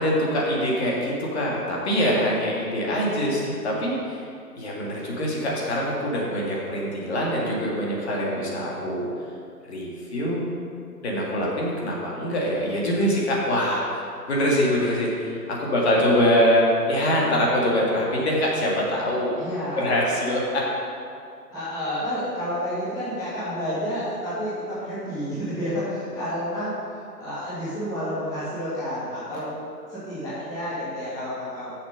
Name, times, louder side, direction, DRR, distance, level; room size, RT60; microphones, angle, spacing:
voice 1, 0.0-4.3 4.6-9.1 9.7-10.4 11.0-14.0 14.3-19.4 19.8-20.6, equal, 40° left, -3 dB, 2.1 m, -24 dB
voice 2, 19.3-20.0 21.5-29.6 29.9-31.8, equal, 5° left, -11 dB, 1.7 m, -30 dB
7.2 x 6.7 x 6.5 m, 2.3 s
figure-of-eight pair, 145°, 49 cm